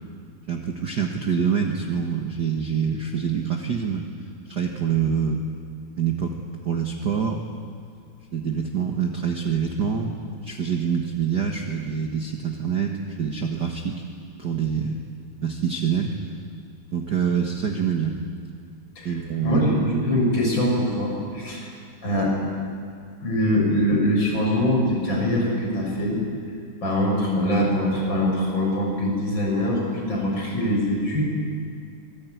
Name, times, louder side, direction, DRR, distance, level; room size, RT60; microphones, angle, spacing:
voice 1, 0.5-4.0 4.5-5.4 6.0-6.3 6.6-7.4 8.3-14.0 14.4-15.0 15.4-16.1 16.9-18.2 19.0-19.6, right 7 dB, 40° right, 2 dB, 1.7 m, -25 dB
voice 2, 19.4-21.7 22.0-22.4 23.2-26.2 26.8-31.2, equal, 35° left, -3 dB, 7.8 m, -23 dB
25.5 x 20.5 x 9.4 m, 2.4 s
omnidirectional pair, 3.4 m